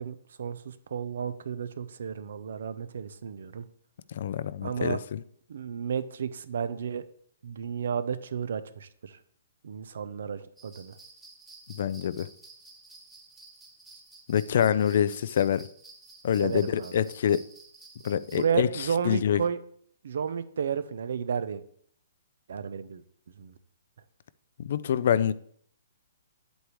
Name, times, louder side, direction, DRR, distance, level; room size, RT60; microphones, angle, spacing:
voice 1, 0.0-3.6 4.6-5.0 5.5-7.0 7.4-9.2 9.6-10.9 16.4-17.0 18.3-19.6 20.0-21.6 22.5-23.0 23.4-23.5, right 7 dB, 70° right, 0.6 m, -32 dB
voice 2, 4.1-5.2 11.7-12.3 14.3-15.7 16.2-17.4 18.0-19.4 24.6-25.3, left 9 dB, 60° left, 0.4 m, -26 dB
Sleighbells Shaked Phase Corrected, 10.6-18.4, right 3 dB, 10° right, 1.4 m, -52 dB
8.2 x 8.0 x 3.1 m
hypercardioid pair, 150°, 0 cm